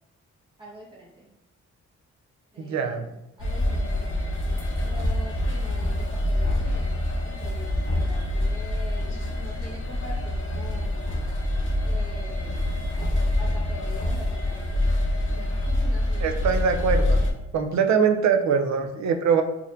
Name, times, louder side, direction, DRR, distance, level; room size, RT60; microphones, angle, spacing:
voice 1, 0.6-1.3 2.5-4.3 4.8-11.0 11.8-12.6 13.0-14.9 15.2-16.5 17.7-17.8, right 1 dB, 15° right, -5 dB, 1.2 m, -44 dB
voice 2, 2.6-3.1 16.2-17.2 17.5-19.4, right 6 dB, 70° right, 6 dB, 0.5 m, -23 dB
sound 1, 3.4-17.3, left 1 dB, 40° left, 0.8 m, -26 dB
4.2 x 2.8 x 2.5 m, 0.87 s
cardioid pair, 115°, 29 cm